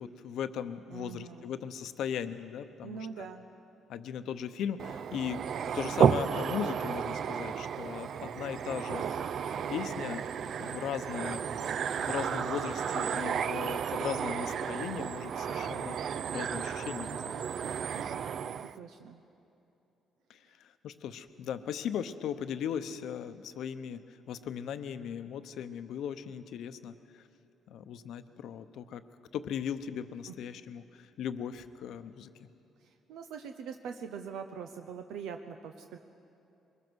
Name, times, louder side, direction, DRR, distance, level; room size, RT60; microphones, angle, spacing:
voice 1, 0.0-3.2 3.9-5.4 5.7-9.0 9.7-17.5 20.3-27.2 27.7-29.0 29.3-32.3, left 8 dB, 75° left, 10 dB, 0.8 m, -38 dB
voice 2, 0.9-1.5 2.8-3.5 17.9-19.2 30.3-30.4 32.8-36.0, right 7 dB, 90° right, 6 dB, 0.8 m, -43 dB
sound 1, 4.8-18.8, right 7 dB, 55° right, 0.4 m, -33 dB
22.5 x 21.0 x 6.3 m, 2.8 s
cardioid pair, 120°, 0 cm